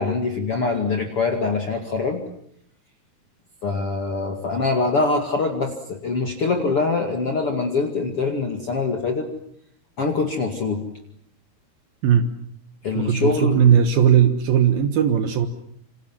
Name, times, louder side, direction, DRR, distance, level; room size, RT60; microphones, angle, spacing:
voice 1, 0.0-2.2 3.6-9.3 10.0-10.8 12.8-13.6, left 4 dB, 40° left, 3 dB, 2.6 m, -24 dB
voice 2, 12.9-15.5, right 8 dB, 70° right, 8 dB, 3.1 m, -18 dB
27.5 x 27.5 x 7.6 m, 0.70 s
omnidirectional pair, 4.6 m